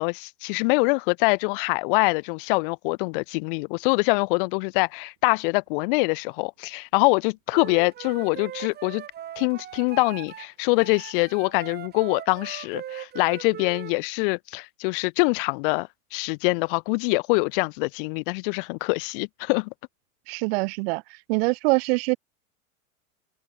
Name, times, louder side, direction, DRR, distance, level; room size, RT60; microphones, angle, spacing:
voice 1, 0.0-9.0 9.4-19.7, left 30 dB, 40° left, 0.5 m, -24 dB
Wind instrument woodwind instrument, 7.5-10.5 10.8-13.9, right 11 dB, 25° right, 1.1 m, -39 dB
voice 2, 20.3-21.0 21.3-22.2, right 28 dB, 45° right, 0.8 m, -24 dB
hypercardioid pair, 105°, 42 cm